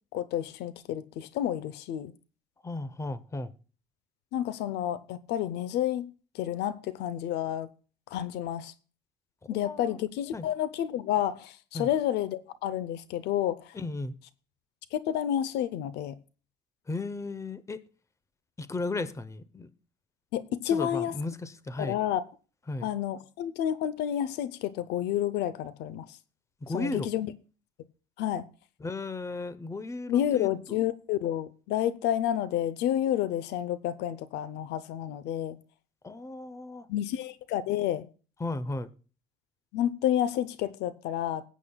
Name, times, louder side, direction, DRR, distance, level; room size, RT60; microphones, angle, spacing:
voice 1, 0.1-2.1 4.3-7.7 8.1-8.7 9.5-13.6 14.9-16.1 20.3-21.1 21.8-22.2 22.8-26.1 26.7-27.3 28.2-28.5 30.1-35.6 36.9-38.1 39.7-41.4, left 11 dB, 85° left, 0.7 m, -30 dB
voice 2, 2.6-3.5 9.6-10.0 10.3-10.5 11.7-11.9 13.7-14.1 16.9-17.8 18.6-19.7 20.7-22.0 22.7-22.9 26.6-27.1 28.8-30.8 36.0-36.9 38.4-38.9, left 2 dB, 15° left, 0.8 m, -35 dB
21.0 x 8.4 x 2.3 m
cardioid pair, 110°, 17 cm